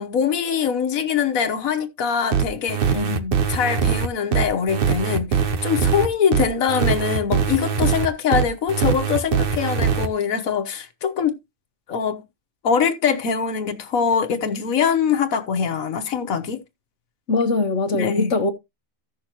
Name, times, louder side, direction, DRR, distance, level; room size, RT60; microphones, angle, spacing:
voice 1, 0.0-3.0 3.5-11.4 11.9-12.2 12.6-16.6 17.9-18.3, left 7 dB, 80° left, 1.5 m, -23 dB
sound 1, 2.3-10.1, right 7 dB, 45° right, 1.0 m, -22 dB
voice 2, 2.9-3.5 17.3-18.5, left 3 dB, 60° left, 1.5 m, -22 dB
15.0 x 6.3 x 2.9 m
omnidirectional pair, 1.4 m